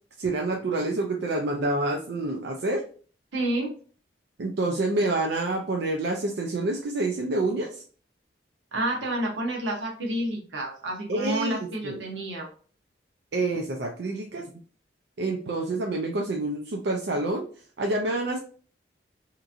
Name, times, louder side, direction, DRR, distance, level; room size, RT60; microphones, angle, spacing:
voice 1, 0.2-2.8 4.4-7.7 11.1-11.6 11.8-12.0 13.3-14.5 15.2-17.5 17.8-18.4, right 2 dB, 65° right, 1 dB, 0.4 m, -27 dB
voice 2, 3.3-3.7 8.7-12.5, right 1 dB, 90° right, 0 dB, 0.9 m, -29 dB
2.9 x 2.5 x 2.5 m, 0.42 s
head